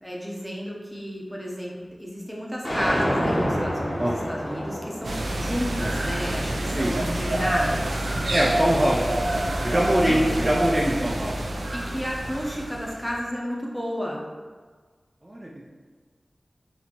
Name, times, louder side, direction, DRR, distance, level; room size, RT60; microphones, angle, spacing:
voice 1, 0.0-8.1 10.0-10.5 11.7-14.2, equal, 5° left, -3 dB, 0.8 m, -32 dB
sound 1, 2.6-8.8, equal, 35° left, 1.2 m, -30 dB
voice 2, 4.0-4.3 6.8-6.9 8.3-11.6 15.2-15.7, equal, 30° right, -4 dB, 0.4 m, -24 dB
sound 2, 5.0-13.2, right 1 dB, 90° right, 0.4 m, -27 dB
4.2 x 2.7 x 2.9 m, 1.5 s
wide cardioid pair, 65°, 0 cm